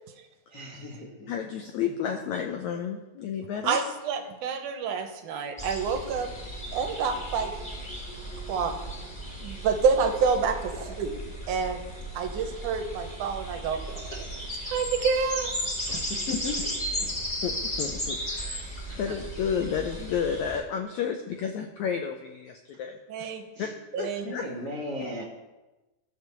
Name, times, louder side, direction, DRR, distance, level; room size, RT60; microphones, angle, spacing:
voice 1, 0.5-1.6 7.9-8.1 10.7-10.8 14.1-14.2 15.9-17.1 18.9-19.2 23.5-23.7 24.2-25.2, left 1 dB, 40° left, -2 dB, 1.5 m, -37 dB
voice 2, 1.3-3.8 17.4-18.7 19.0-23.0 23.6-23.7 24.0-24.6, left 7 dB, 90° left, 4 dB, 1.6 m, -31 dB
voice 3, 3.6-6.3 6.7-7.5 8.5-8.7 9.4-10.7 11.0-11.1 11.5-11.8 12.1-13.8 14.6-15.5 23.1-23.6 23.9-24.2, right 5 dB, 70° right, 5 dB, 2.2 m, -27 dB
sound 1, 5.6-20.6, equal, 15° left, 2.3 m, -35 dB
14.5 x 5.0 x 6.9 m, 1.1 s
omnidirectional pair, 4.2 m